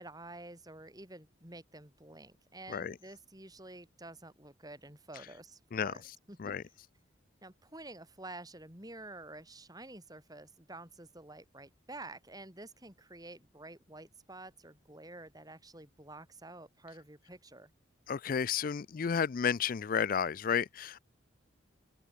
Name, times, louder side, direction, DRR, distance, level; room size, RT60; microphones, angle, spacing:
voice 1, 0.0-6.5 7.4-17.7, right 2 dB, 20° right, 5.1 m, -50 dB
voice 2, 18.1-21.0, left 7 dB, 45° left, 0.4 m, -32 dB
head